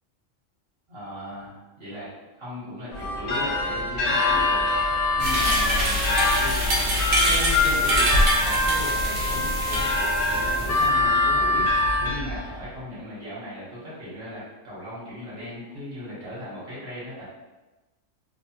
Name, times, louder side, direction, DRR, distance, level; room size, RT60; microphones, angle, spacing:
voice 1, 0.9-4.7 5.2-6.5 7.2-17.2, left 1 dB, 55° right, -9 dB, 1.2 m, -37 dB
Harmonica, 2.9-6.4 7.0-12.1, left 2 dB, 90° left, 1.0 m, -25 dB
sound 1, 2.9-12.8, left 2 dB, 70° left, 0.4 m, -29 dB
sound 2, 5.2-10.9, equal, 85° right, 1.0 m, -25 dB
2.8 x 2.0 x 2.8 m, 1.1 s
omnidirectional pair, 1.3 m